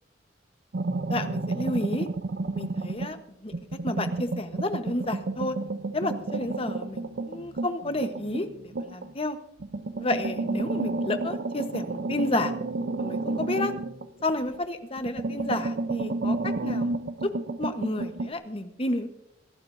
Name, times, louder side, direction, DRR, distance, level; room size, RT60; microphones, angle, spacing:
sound 1, 0.7-3.2 3.5-9.1 9.6-14.6 15.0-18.3, right 2 dB, 55° right, 0.6 m, -31 dB
voice 1, 1.1-2.1 2.5-3.2 3.4-3.6 3.8-5.5 5.9-9.4 10.0-12.5 13.0-13.7 14.2-17.3 17.6-19.1, left 2 dB, 30° left, 9 dB, 1.0 m, -31 dB
24.5 x 12.0 x 2.6 m, 0.79 s
head